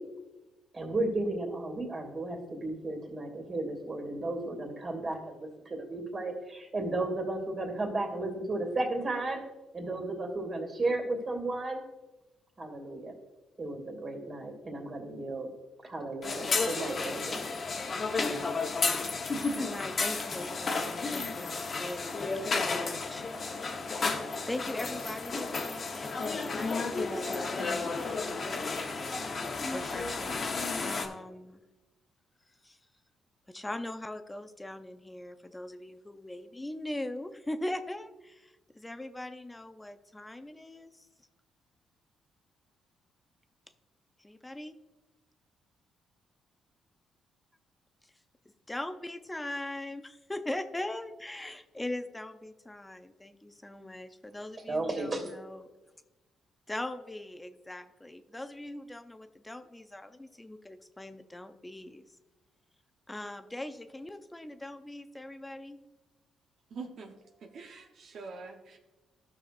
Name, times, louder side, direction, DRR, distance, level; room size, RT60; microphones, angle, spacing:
voice 1, 0.7-9.4 9.7-11.8 12.6-13.1 13.6-15.5 15.8-17.5 54.7-55.3, right 2 dB, 40° right, 1 dB, 2.5 m, -34 dB
sound 1, 16.2-31.1, left 4 dB, 45° left, 1.0 m, -32 dB
voice 2, 19.2-23.2 24.0-28.3 29.7-31.6 32.6-32.8 33.5-41.1 44.2-44.8 48.7-55.7 56.7-62.0 63.1-65.8, left 1 dB, 15° left, 9 dB, 0.6 m, -41 dB
voice 3, 66.7-67.1 67.4-68.8, right 4 dB, 65° right, 3 dB, 0.9 m, -44 dB
14.5 x 6.3 x 2.5 m, 1.1 s
cardioid pair, 90°, 0 cm